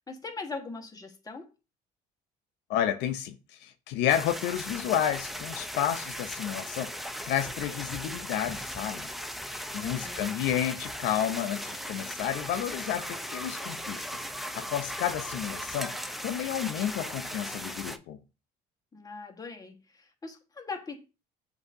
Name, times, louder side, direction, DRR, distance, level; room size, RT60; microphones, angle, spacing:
voice 1, 0.1-1.5 9.7-10.2 18.9-21.0, left 4 dB, 20° left, 1.2 m, -41 dB
voice 2, 2.7-3.3 3.6-9.1 9.5-18.2, left 10 dB, 80° left, 0.5 m, -31 dB
sound 1, 4.1-18.0, equal, ahead, 0.4 m, -38 dB
7.8 x 2.7 x 2.5 m
cardioid pair, 95°, 18 cm